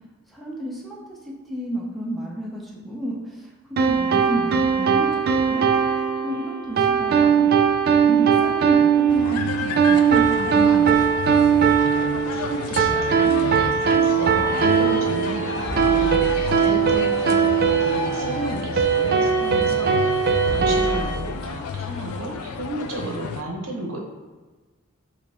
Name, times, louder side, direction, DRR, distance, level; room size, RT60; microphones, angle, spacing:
voice 1, 0.3-1.0 1.5-5.7 6.2-7.6 7.9-11.0, equal, ahead, -4 dB, 0.6 m, -31 dB
sound 1, 3.8-21.0, right 7 dB, 45° right, 0.3 m, -20 dB
sound 2, 9.1-23.4, left 6 dB, 85° left, 0.3 m, -32 dB
voice 2, 12.3-20.2 20.5-24.0, right 1 dB, 70° right, 0 dB, 0.8 m, -33 dB
sound 3, 14.4-21.4, equal, 65° left, 0.8 m, -31 dB
3.4 x 3.1 x 4.0 m, 1.3 s
head